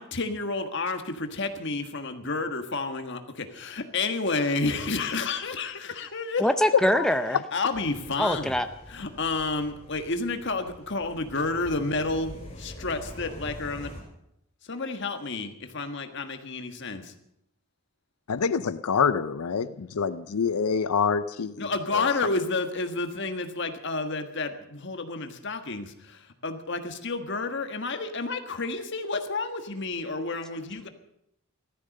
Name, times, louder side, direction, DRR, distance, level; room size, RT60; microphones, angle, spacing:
voice 1, 0.0-6.5 7.5-8.6 8.9-13.9 14.7-17.1 21.6-30.9, left 3 dB, 55° left, 6 dB, 1.6 m, -30 dB
voice 2, 6.4-7.4 8.2-8.7, left 1 dB, 5° left, 8 dB, 0.5 m, -23 dB
sound 1, 7.7-14.0, left 1 dB, 25° left, 5.1 m, -44 dB
voice 3, 18.3-22.1, left 6 dB, 80° left, 13 dB, 0.5 m, -26 dB
15.5 x 13.5 x 6.6 m, 0.79 s
head